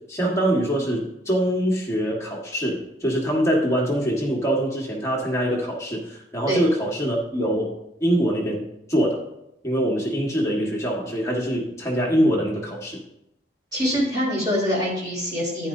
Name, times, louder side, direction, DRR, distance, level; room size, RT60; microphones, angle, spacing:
voice 1, 0.1-7.7 8.0-9.2 9.6-13.0, equal, 15° left, -3 dB, 1.6 m, -24 dB
voice 2, 13.7-15.7, equal, 20° right, -6 dB, 3.9 m, -24 dB
10.5 x 9.8 x 2.7 m, 0.83 s
head